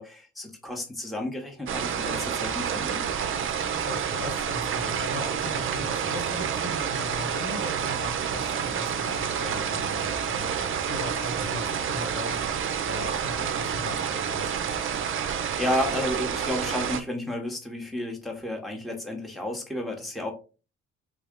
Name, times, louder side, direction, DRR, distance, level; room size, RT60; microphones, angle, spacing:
voice 1, 0.0-3.1 15.6-20.3, left 1 dB, ahead, 1 dB, 0.8 m, -32 dB
sound 1, 1.7-17.0, right 7 dB, 45° right, 0.5 m, -29 dB
voice 2, 3.9-14.5, left 2 dB, 65° left, 2 dB, 2.0 m, -39 dB
3.7 x 2.2 x 3.5 m, 0.33 s
cardioid pair, 90°, 30 cm